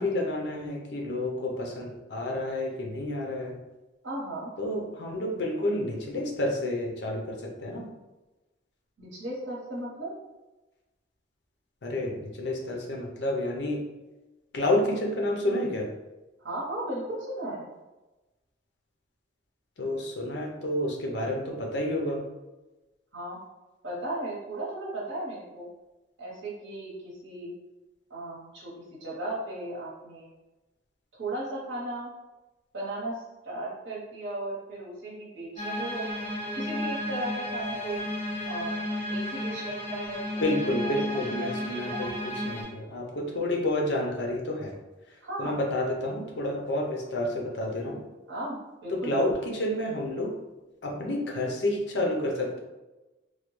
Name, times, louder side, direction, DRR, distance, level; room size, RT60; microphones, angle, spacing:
voice 1, 0.0-3.5 4.6-7.9 11.8-13.8 14.5-15.9 19.8-22.2 40.4-44.8 45.1-48.0 48.9-50.3 50.8-52.6, left 1 dB, 65° left, 0 dB, 0.6 m, -30 dB
voice 2, 4.0-4.5 9.0-10.1 16.4-17.7 23.1-23.4 23.8-25.7 26.2-27.5 28.1-30.3 31.1-32.1 32.7-36.1 36.6-38.1 38.4-38.8 39.1-40.5 41.1-41.2 45.2-45.6 48.3-49.1, right 1 dB, 75° right, -6 dB, 0.9 m, -36 dB
sound 1, 35.6-42.6, left 1 dB, 35° left, 1.4 m, -33 dB
3.1 x 2.2 x 3.0 m, 1.1 s
head